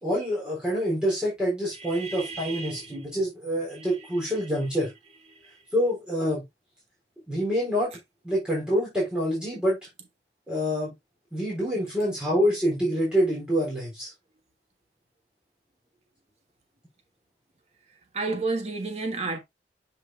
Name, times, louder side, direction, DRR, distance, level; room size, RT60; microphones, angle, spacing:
voice 1, 0.0-4.9 5.7-6.4 7.3-7.9 8.2-9.8 10.5-10.9 11.3-14.1, equal, 5° right, 3.6 m, -26 dB
voice 2, 1.8-2.8 3.8-3.9 18.1-19.4, right 3 dB, 35° right, 1.4 m, -31 dB
7.6 x 5.5 x 2.3 m
head